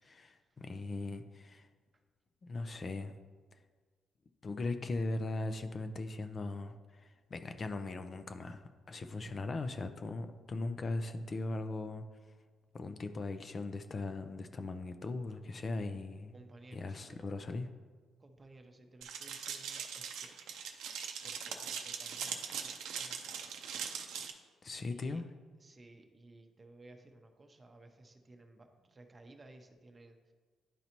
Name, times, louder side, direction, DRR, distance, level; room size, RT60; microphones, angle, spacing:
voice 1, 0.0-1.7 2.4-3.1 3.5-3.6 4.4-12.0 12.7-16.3 16.7-17.7 24.6-25.3, left 3 dB, 40° left, 8 dB, 0.4 m, -39 dB
voice 2, 16.3-17.3 18.2-20.3 21.2-23.6 24.9-25.2 25.6-30.3, right 2 dB, 25° right, 5 dB, 0.7 m, -57 dB
sound 1, 19.0-24.3, right 7 dB, 85° right, 0.6 m, -41 dB
10.5 x 4.0 x 2.9 m, 1.5 s
cardioid pair, 90°, 0 cm